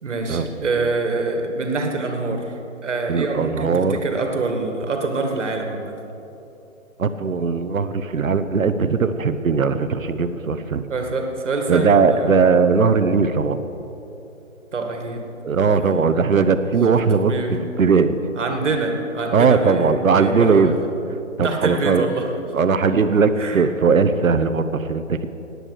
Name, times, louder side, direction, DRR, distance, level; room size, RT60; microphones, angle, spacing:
voice 1, 0.0-2.5 2.8-6.0 10.9-12.5 14.7-15.2 15.7-16.1 17.3-17.5 18.4-20.7 21.4-22.3 23.4-23.6, right 3 dB, 60° right, 4 dB, 2.1 m, -25 dB
voice 2, 3.1-3.9 7.0-10.8 11.7-13.6 15.4-17.3 17.8-18.2 19.3-20.7 21.4-22.1 22.5-25.3, right 5 dB, 75° right, 11 dB, 1.1 m, -18 dB
16.5 x 9.9 x 6.5 m, 2.9 s
hypercardioid pair, 170°, 40 cm